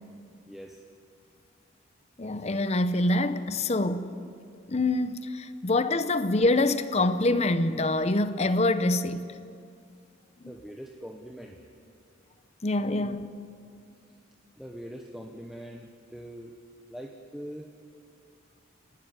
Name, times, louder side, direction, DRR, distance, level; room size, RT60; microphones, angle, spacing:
voice 1, 0.5-0.8 10.5-11.6 12.8-13.2 14.6-16.5 16.9-17.7, equal, ahead, 1.0 m, -42 dB
voice 2, 2.2-4.2 4.7-9.4 12.6-13.3, left 2 dB, 30° left, 0.7 m, -25 dB
30.0 x 12.5 x 9.5 m
head